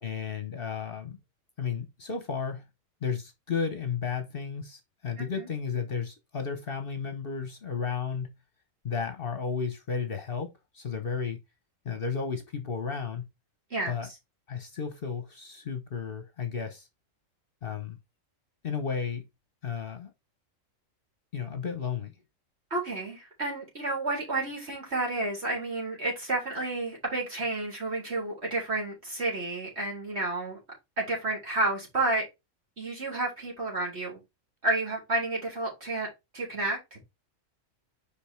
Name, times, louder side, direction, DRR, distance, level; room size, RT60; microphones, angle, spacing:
voice 1, 0.0-1.2 1.6-2.7 3.0-8.3 8.8-11.4 11.8-13.3 13.9-14.1 14.5-16.9 17.6-18.0 18.6-19.2 19.6-20.1 21.3-22.1, left 6 dB, 50° left, 1.1 m, -33 dB
voice 2, 5.2-5.5 13.7-13.9 22.7-30.6 31.0-32.2 32.8-34.2 34.6-36.1 36.3-37.0, right 2 dB, 50° right, 4.0 m, -31 dB
5.2 x 5.1 x 4.4 m
omnidirectional pair, 1.4 m